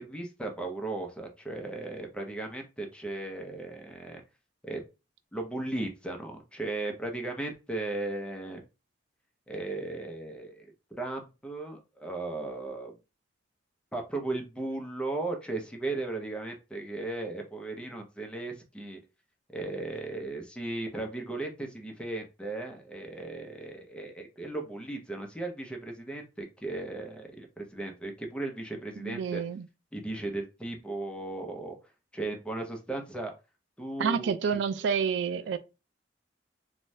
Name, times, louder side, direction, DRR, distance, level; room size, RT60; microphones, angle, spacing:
voice 1, 0.0-4.2 4.6-4.8 5.3-8.6 9.5-10.7 11.0-12.9 13.9-19.0 19.5-29.4 29.9-31.8 32.1-33.3 33.8-34.6 35.3-35.6, right 2 dB, 5° left, 0.6 m, -36 dB
voice 2, 29.0-29.7 34.0-35.6, right 6 dB, 85° right, 0.3 m, -29 dB
2.6 x 2.2 x 3.1 m
head